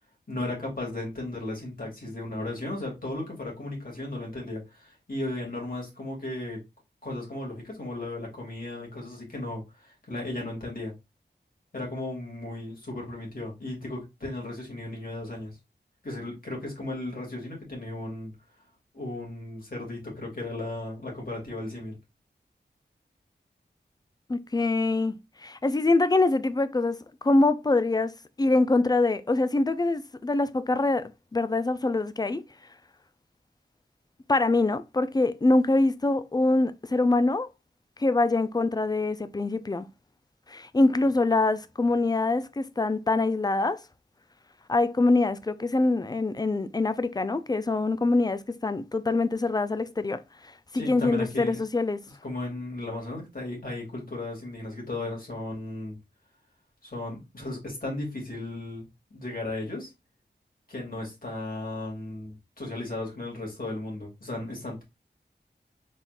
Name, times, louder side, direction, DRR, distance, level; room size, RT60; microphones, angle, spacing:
voice 1, 0.3-6.6 7.0-10.9 11.7-15.6 16.0-18.3 18.9-22.0 50.7-51.6 52.2-56.0 56.8-58.9 59.1-59.9 60.7-64.8, left 2 dB, 50° left, 2.4 m, -35 dB
voice 2, 24.3-25.2 25.4-27.0 27.2-28.1 28.4-32.4 34.3-37.5 38.0-39.9 40.5-43.8 44.7-52.0, left 2 dB, 20° left, 0.4 m, -24 dB
4.2 x 3.6 x 2.4 m
wide cardioid pair, 65°, 18 cm